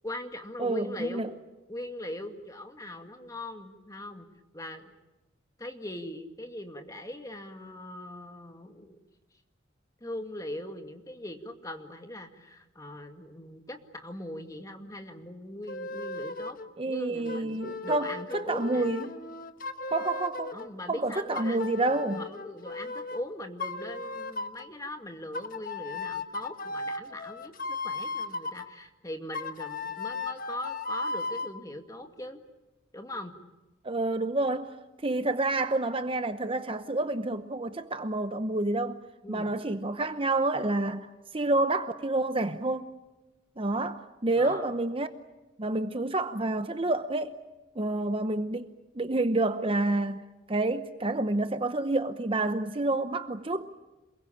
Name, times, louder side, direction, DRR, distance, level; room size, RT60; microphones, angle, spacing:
voice 1, 0.0-1.3 1.7-4.3 4.5-4.9 5.6-9.0 10.0-16.6 16.9-18.9 20.5-32.4 32.9-33.3 39.2-39.5 44.4-44.7, left 1 dB, 15° left, 2.1 m, -40 dB
voice 2, 0.6-1.3 16.8-19.1 19.9-20.6 20.9-22.2 33.8-34.7 35.0-39.0 39.3-41.1 41.3-42.9 43.6-45.1 45.6-47.3 47.8-48.7 48.9-50.2 50.5-53.7, right 2 dB, 30° right, 0.8 m, -28 dB
sound 1, 15.7-16.7 17.3-20.7 21.3-23.2 23.6-24.7 25.3-28.7 29.3-31.5, left 3 dB, 45° left, 1.3 m, -36 dB
28.0 x 22.0 x 8.7 m
head